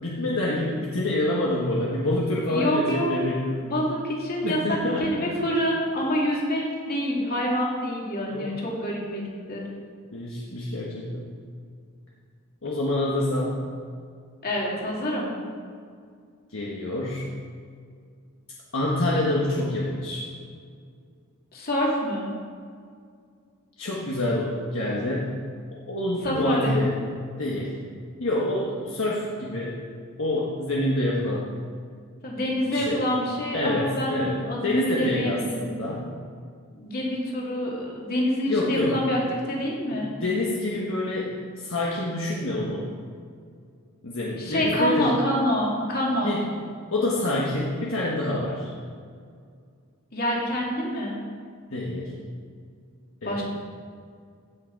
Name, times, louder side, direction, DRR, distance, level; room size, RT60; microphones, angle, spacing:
voice 1, 0.0-3.7 4.4-5.3 8.3-8.6 10.1-11.3 12.6-13.6 16.5-17.3 18.7-20.3 23.8-25.4 25.9-26.9 27.4-27.8 28.2-29.8 30.2-31.5 32.7-33.0 33.5-36.0 38.5-39.0 39.9-42.9 44.0-45.1 46.2-46.4 46.9-48.7 51.7-52.1 53.2-53.4, left 1 dB, 65° left, -4 dB, 1.4 m, -27 dB
voice 2, 2.5-3.2 3.6-9.6 14.4-15.3 21.5-22.3 26.2-26.8 32.2-35.6 36.7-40.1 44.4-46.4 50.1-51.2 53.2-53.4, equal, 45° left, -3 dB, 2.7 m, -26 dB
16.0 x 6.4 x 4.7 m, 2.2 s
head